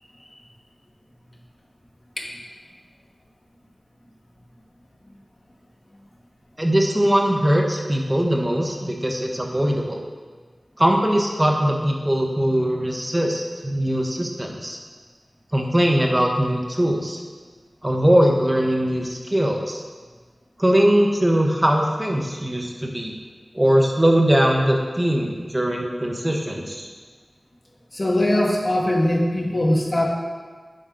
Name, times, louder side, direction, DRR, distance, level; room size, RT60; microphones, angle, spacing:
voice 1, 6.6-10.0 10.8-14.8 15.5-17.2 17.8-19.8 20.6-23.1 23.5-26.9, equal, 20° right, 1 dB, 0.9 m, -21 dB
voice 2, 27.9-30.1, left 1 dB, 35° left, 0 dB, 1.2 m, -21 dB
7.7 x 5.3 x 3.9 m, 1.5 s
wide cardioid pair, 45°, 0 cm